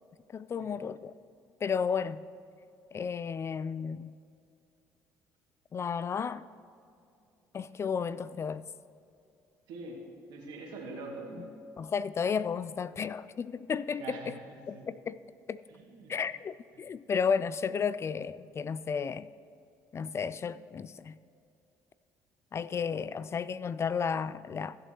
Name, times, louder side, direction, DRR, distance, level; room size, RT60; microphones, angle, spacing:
voice 1, 0.3-1.1 1.6-2.2 2.9-4.1 5.7-6.5 7.5-8.6 11.8-14.4 14.7-15.2 15.5-15.6 16.1-19.3 19.9-21.2 22.5-24.8, left 6 dB, 35° left, 0.3 m, -33 dB
voice 2, 9.7-10.0 10.3-11.5 13.9-14.9 15.7-16.1, right 3 dB, 75° right, 2.3 m, -44 dB
16.0 x 7.7 x 3.1 m
supercardioid pair, 70°, 8 cm